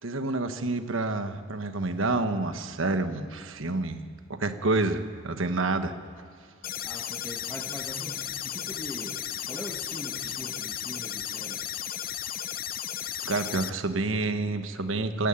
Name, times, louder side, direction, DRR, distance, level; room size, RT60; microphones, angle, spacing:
voice 1, 0.0-4.0 4.3-6.0 13.2-15.3, right 2 dB, 75° right, 8 dB, 1.3 m, -28 dB
sound 1, 6.6-13.7, left 10 dB, 45° left, 0.7 m, -35 dB
voice 2, 6.8-11.7, left 1 dB, 10° left, 5 dB, 1.2 m, -42 dB
26.5 x 11.0 x 9.0 m, 2.3 s
head